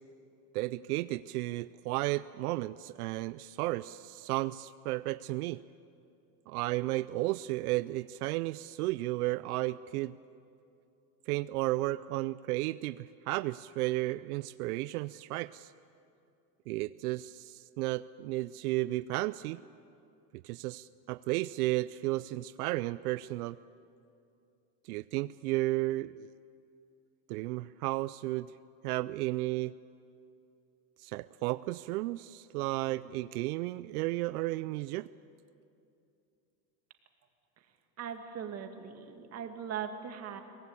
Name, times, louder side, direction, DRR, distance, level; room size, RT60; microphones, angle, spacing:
voice 1, 0.5-5.6 6.5-10.1 11.3-15.7 16.7-19.6 20.4-23.6 24.8-26.3 27.3-28.5 28.8-29.7 31.0-35.1, right 19 dB, 85° right, 15 dB, 0.6 m, -33 dB
voice 2, 38.0-40.4, right 8 dB, 35° right, 5 dB, 2.2 m, -40 dB
23.5 x 18.5 x 8.5 m, 2.7 s
supercardioid pair, 135°, 44 cm